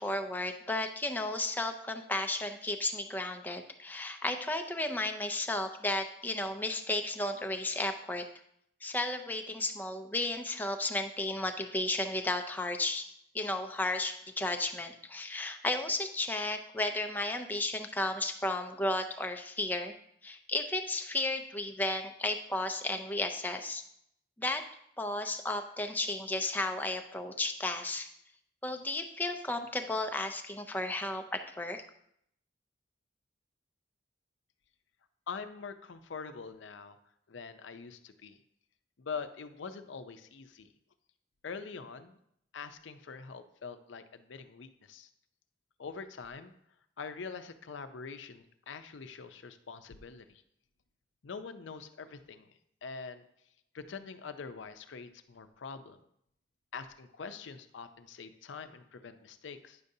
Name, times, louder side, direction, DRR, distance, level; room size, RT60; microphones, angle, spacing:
voice 1, 0.0-8.3 8.8-19.9 20.2-23.8 24.4-24.6 25.0-28.1 28.6-31.8, left 2 dB, 10° left, 5 dB, 0.4 m, -33 dB
voice 2, 35.3-37.0 37.3-38.4 39.0-40.7 41.4-42.2 42.5-45.1 45.8-46.5 47.0-50.4 51.2-53.2 53.7-56.0 56.7-59.8, left 5 dB, 80° left, 10 dB, 0.5 m, -44 dB
9.5 x 6.6 x 2.7 m, 0.73 s
head